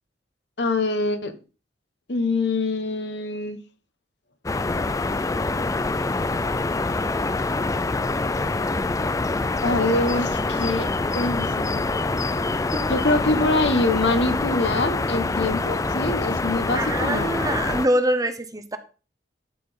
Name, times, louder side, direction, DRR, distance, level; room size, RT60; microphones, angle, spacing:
voice 1, 0.6-1.3 2.1-3.6 9.6-10.9 11.1-11.9 12.9-17.4, left 2 dB, 70° left, 1.3 m, -24 dB
sound 1, 4.5-17.9, left 3 dB, 20° left, 0.4 m, -25 dB
voice 2, 16.7-18.8, right 1 dB, 20° right, 0.9 m, -24 dB
12.0 x 4.2 x 5.2 m
head